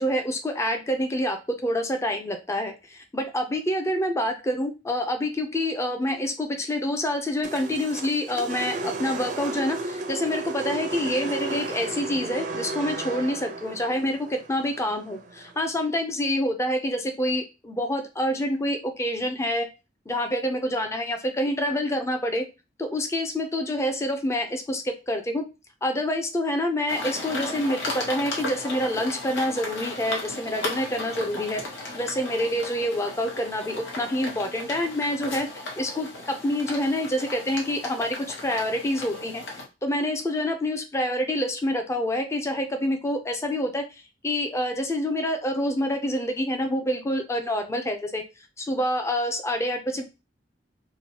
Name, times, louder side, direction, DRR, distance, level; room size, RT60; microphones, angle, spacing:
voice 1, 0.0-19.7 20.1-22.5 22.8-25.4 25.8-31.6 31.9-35.5 35.8-39.4 39.8-43.8 44.2-48.2 48.6-50.0, left 1 dB, 15° left, 5 dB, 0.4 m, -27 dB
sound 1, 7.4-15.7, right 3 dB, 45° right, 0.4 m, -34 dB
sound 2, 26.9-39.6, left 2 dB, 90° left, 1.0 m, -35 dB
3.1 x 2.1 x 2.8 m, 0.28 s
head